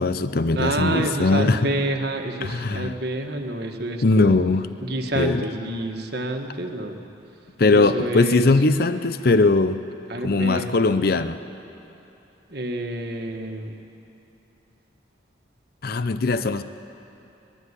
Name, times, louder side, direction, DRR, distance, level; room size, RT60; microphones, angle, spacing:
voice 1, 0.0-1.7 2.4-2.9 4.0-4.8 5.2-5.5 7.6-9.8 10.2-11.4 15.8-16.6, left 3 dB, 50° left, 12 dB, 0.6 m, -20 dB
voice 2, 0.5-4.4 4.8-7.0 7.7-8.5 10.1-11.1 12.5-13.7, right 1 dB, 55° right, 3 dB, 1.5 m, -28 dB
21.0 x 13.0 x 9.7 m, 2.9 s
head